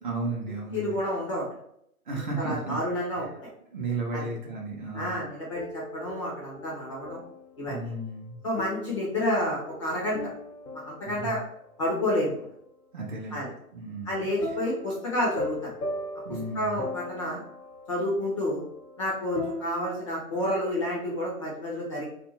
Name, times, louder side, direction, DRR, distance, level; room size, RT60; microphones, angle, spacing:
voice 1, 0.0-0.9 2.1-2.8 3.1-3.3 3.7-5.1 7.7-8.4 11.0-11.4 12.9-13.4 13.7-14.3 16.2-16.8, right 3 dB, 35° right, -2 dB, 0.7 m, -34 dB
voice 2, 0.7-1.4 2.1-3.5 4.1-4.3 4.9-7.2 7.6-7.9 8.4-10.2 10.7-11.4 11.8-12.5 13.3-13.5 14.0-15.7 16.5-17.4 17.9-18.6 19.0-22.1, left 1 dB, 20° left, -5 dB, 0.5 m, -30 dB
sound 1, 4.9-7.6 8.6-11.9 14.4-20.5, left 2 dB, 85° left, 0.8 m, -39 dB
2.4 x 2.2 x 3.0 m, 0.73 s
figure-of-eight pair, 135°, 45 cm